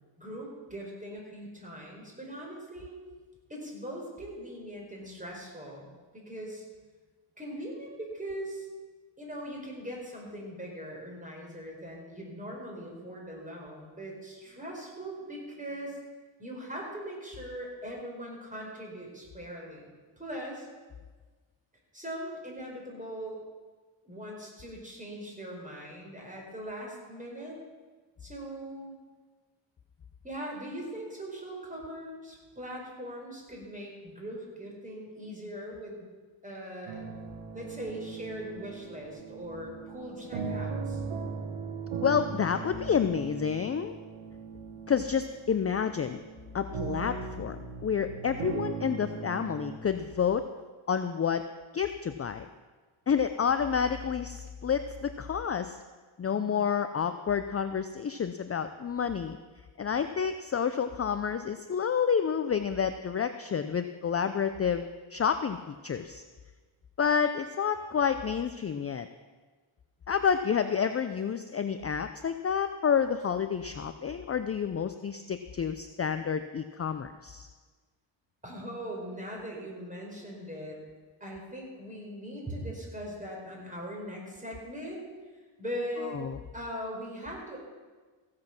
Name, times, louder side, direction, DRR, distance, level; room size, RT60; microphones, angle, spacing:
voice 1, 0.2-2.9 3.5-6.6 7.4-8.7 9.2-16.0 16.4-20.7 21.9-23.4 24.0-27.6 28.2-28.9 30.2-36.1 36.4-37.1 37.5-41.0 44.8-44.9 56.3-56.6 78.4-80.8 81.2-85.0 85.6-86.2 86.5-87.6, equal, 15° right, -2 dB, 4.8 m, -40 dB
sound 1, 36.9-49.8, right 5 dB, 85° right, 1.7 m, -39 dB
voice 2, 42.0-43.9 44.9-46.2 46.5-47.6 47.8-50.4 50.9-51.4 51.7-52.4 53.1-55.8 56.2-59.4 59.8-66.2 67.0-69.1 70.1-77.5 86.0-86.4, left 7 dB, 30° left, 9 dB, 0.5 m, -29 dB
15.5 x 7.7 x 6.0 m, 1.4 s
cardioid pair, 75°, 49 cm